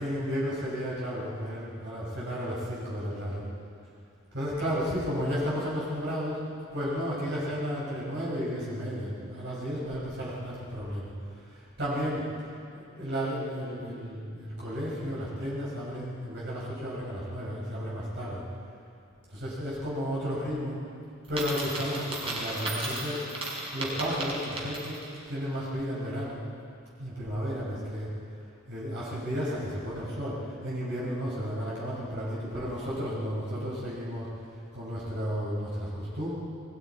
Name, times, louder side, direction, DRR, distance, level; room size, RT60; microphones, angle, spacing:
voice 1, 0.0-3.4 4.3-6.4 6.7-11.1 11.8-12.2 12.7-18.4 19.3-20.8 21.3-23.2 23.7-25.0 25.3-26.4 27.0-28.1 28.7-30.4 30.6-34.3 34.7-36.3, equal, 55° right, -7 dB, 6.3 m, -33 dB
Coin (dropping), 21.2-25.2, right 2 dB, 30° right, 5.0 m, -35 dB
28.5 x 22.0 x 4.8 m, 2.5 s
head